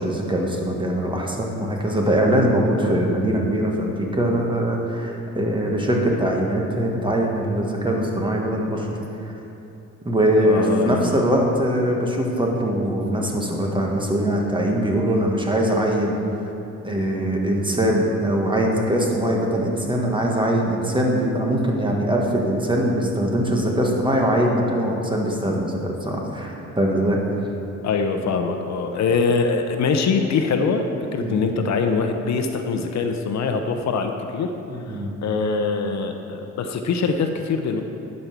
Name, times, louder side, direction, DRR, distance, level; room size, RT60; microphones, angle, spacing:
voice 1, 0.0-8.9 10.0-16.2 16.8-27.2 31.2-31.4 34.7-35.1, right 1 dB, 15° right, 0 dB, 1.6 m, -22 dB
voice 2, 10.4-11.2 27.8-30.8 31.1-34.5 35.2-37.8, left 4 dB, 65° left, 5 dB, 0.8 m, -23 dB
11.5 x 5.4 x 6.0 m, 2.9 s
cardioid pair, 90°, 30 cm